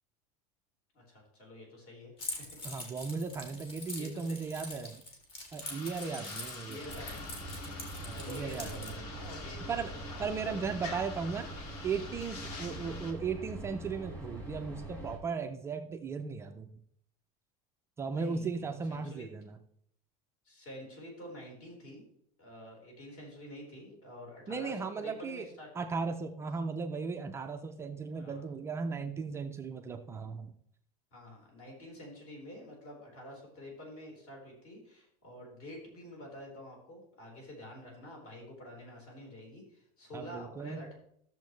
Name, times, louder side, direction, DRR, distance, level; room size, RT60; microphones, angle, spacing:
voice 1, 0.9-2.6 4.0-4.5 6.7-7.3 8.1-10.5 12.7-13.0 18.0-19.3 20.4-22.0 22.4-25.9 28.1-28.5 31.1-41.0, left 1 dB, 45° left, -1 dB, 4.1 m, -48 dB
Keys jangling, 2.2-8.9, left 1 dB, 30° left, 2.1 m, -44 dB
voice 2, 2.6-5.0 5.5-6.8 8.0-9.0 9.7-9.9 10.2-11.5 11.8-16.7 18.0-19.6 24.5-25.5 25.8-30.5 40.1-40.8, right 5 dB, 15° right, 5 dB, 0.3 m, -36 dB
sound 1, 5.6-13.1, left 4 dB, 80° left, 2.0 m, -46 dB
sound 2, 6.8-15.2, right 1 dB, 10° left, 1.7 m, -44 dB
13.5 x 7.1 x 3.1 m, 0.69 s
supercardioid pair, 170°, 20 cm